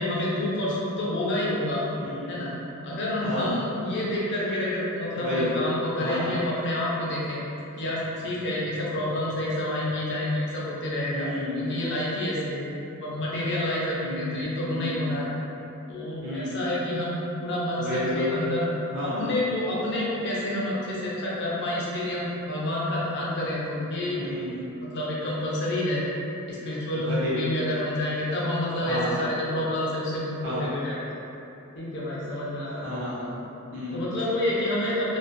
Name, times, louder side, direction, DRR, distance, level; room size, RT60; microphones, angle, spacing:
voice 1, 0.0-1.8 2.3-2.5 2.8-7.4 7.8-11.3 11.5-12.6 12.9-15.3 15.9-18.7 19.0-24.3 24.8-26.0 26.5-31.0 31.8-32.9 33.9-35.2, left 1 dB, 55° left, -6 dB, 0.5 m, -28 dB
voice 2, 2.0-2.4 3.2-3.5 5.1-5.5 6.0-6.3 11.1-11.6 14.0-14.4 14.7-15.0 16.2-16.6 17.8-18.3 18.9-19.2 24.2-24.6 27.0-27.4 28.8-29.1 30.4-30.7 32.8-33.4 33.7-34.0, left 1 dB, 60° right, -9 dB, 0.8 m, -31 dB
2.4 x 2.3 x 2.2 m, 2.8 s
head